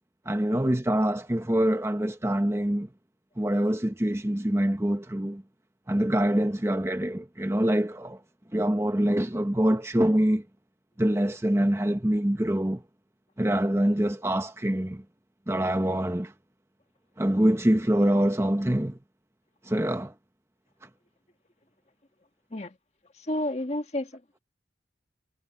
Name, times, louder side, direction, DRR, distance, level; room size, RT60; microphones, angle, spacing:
voice 1, 0.3-2.9 3.4-5.4 5.9-8.2 8.5-10.4 11.0-12.8 13.4-15.0 15.5-16.3 17.2-19.0 19.7-20.1, right 1 dB, 15° right, 0.9 m, -25 dB
voice 2, 23.1-24.2, left 1 dB, 35° left, 1.6 m, -31 dB
head